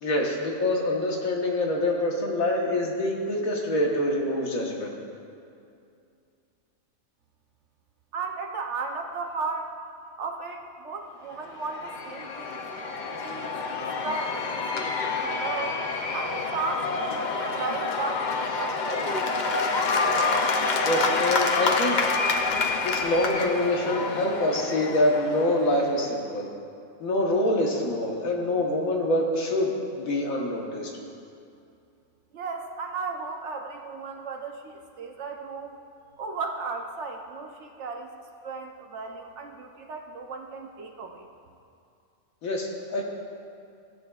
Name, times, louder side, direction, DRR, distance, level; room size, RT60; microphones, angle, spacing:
voice 1, 0.0-4.9 20.8-22.0 22.8-26.5 27.0-30.9 42.4-43.0, left 1 dB, 80° left, -1 dB, 1.6 m, -25 dB
voice 2, 8.1-9.8 10.2-12.7 13.2-15.8 16.1-19.3 32.3-35.8 36.2-38.1 38.4-41.3, right 4 dB, 60° right, 3 dB, 1.0 m, -35 dB
Cheering / Applause / Crowd, 11.4-26.1, left 4 dB, 55° left, 0.5 m, -28 dB
16.0 x 8.0 x 2.4 m, 2.5 s
omnidirectional pair, 1.4 m